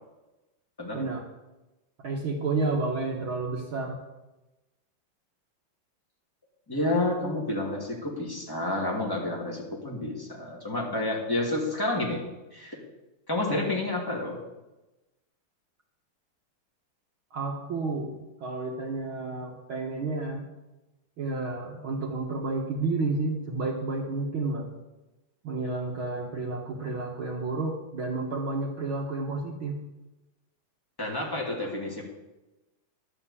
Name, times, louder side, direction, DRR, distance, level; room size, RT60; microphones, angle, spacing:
voice 1, 2.0-4.0 17.3-20.5 21.2-24.7 25.4-29.8, right 3 dB, 65° right, -1 dB, 1.3 m, -31 dB
voice 2, 6.7-12.2 12.5-12.8 13.3-14.4 31.0-32.0, left 2 dB, 10° left, -2 dB, 1.5 m, -29 dB
11.5 x 6.0 x 8.4 m, 1.0 s
omnidirectional pair, 3.9 m